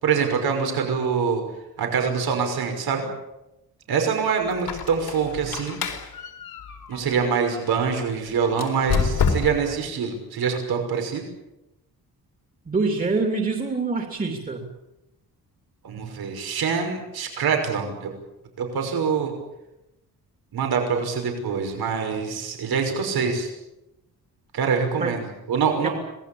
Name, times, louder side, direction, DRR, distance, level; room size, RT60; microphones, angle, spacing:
voice 1, 0.0-1.4 1.8-3.1 3.9-5.8 6.9-11.2 15.8-18.1 18.6-19.3 20.5-23.5 24.5-25.9, right 6 dB, 75° right, 4 dB, 5.7 m, -25 dB
Squeak, 4.5-7.7 8.5-9.8, left 5 dB, 75° left, 4.2 m, -28 dB
voice 2, 12.7-14.6 25.0-25.1 25.8-25.9, right 3 dB, 20° right, 2 dB, 2.9 m, -25 dB
26.0 x 19.0 x 8.7 m, 0.94 s
wide cardioid pair, 165°, 37 cm